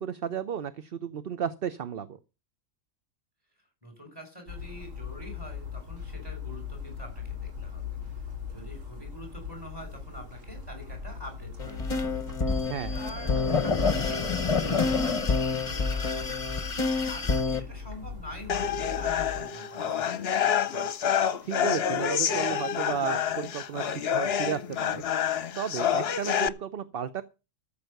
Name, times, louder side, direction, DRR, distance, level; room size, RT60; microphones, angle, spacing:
voice 1, 0.0-2.2 12.7-13.0 21.4-25.0 25.5-27.2, right 8 dB, 50° right, 0.9 m, -33 dB
voice 2, 3.8-12.3 12.9-20.3, equal, 15° right, 6.3 m, -46 dB
sound 1, 4.5-19.4, left 6 dB, 70° right, 2.8 m, -39 dB
sound 2, 11.6-17.6, left 4 dB, 30° left, 1.0 m, -27 dB
sound 3, 18.5-26.5, left 8 dB, 55° left, 0.9 m, -28 dB
14.0 x 7.1 x 6.6 m
omnidirectional pair, 1.4 m